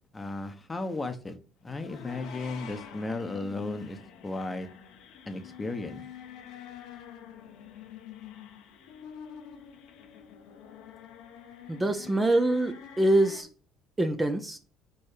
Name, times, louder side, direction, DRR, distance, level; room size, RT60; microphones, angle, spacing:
voice 1, 0.1-1.3 1.6-4.7 5.3-6.0, left 2 dB, 20° left, 0.9 m, -35 dB
sound 1, 1.6-13.4, left 8 dB, 80° left, 1.1 m, -47 dB
voice 2, 11.7-13.5 14.0-14.6, right 1 dB, 15° right, 0.7 m, -25 dB
4.6 x 4.2 x 5.0 m
cardioid pair, 105°, 0 cm